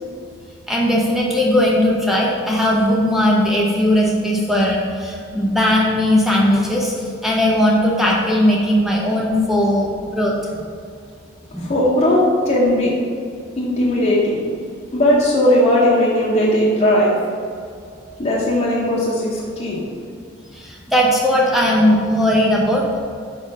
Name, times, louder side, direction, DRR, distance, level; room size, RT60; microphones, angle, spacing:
voice 1, 0.7-6.9 7.2-10.3 11.5-11.7 20.5-23.0, left 1 dB, ahead, -3 dB, 0.7 m, -18 dB
voice 2, 11.6-12.9 13.6-14.4 14.9-17.1 18.2-19.8, left 1 dB, 35° left, -6 dB, 0.9 m, -17 dB
5.2 x 5.1 x 5.4 m, 2.2 s
head